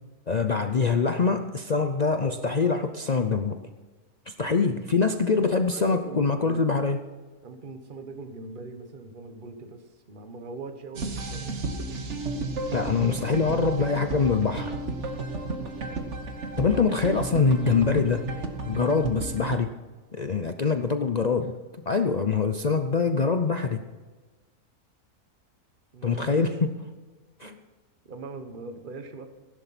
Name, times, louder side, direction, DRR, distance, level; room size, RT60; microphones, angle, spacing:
voice 1, 0.3-3.6 4.3-7.0 12.7-14.8 16.6-18.3 18.7-19.7 20.1-21.5 21.9-23.8 26.0-26.7 27.4-27.5, left 4 dB, 60° left, 8 dB, 0.4 m, -24 dB
voice 2, 4.4-6.8 7.4-11.7 12.7-13.2 15.6-16.0 20.6-20.9 25.9-26.3 27.4-27.6 28.0-29.3, right 3 dB, 35° right, 7 dB, 1.4 m, -42 dB
sound 1, 11.0-19.6, right 2 dB, 50° right, 1.5 m, -33 dB
16.5 x 11.0 x 5.9 m, 1.3 s
omnidirectional pair, 1.6 m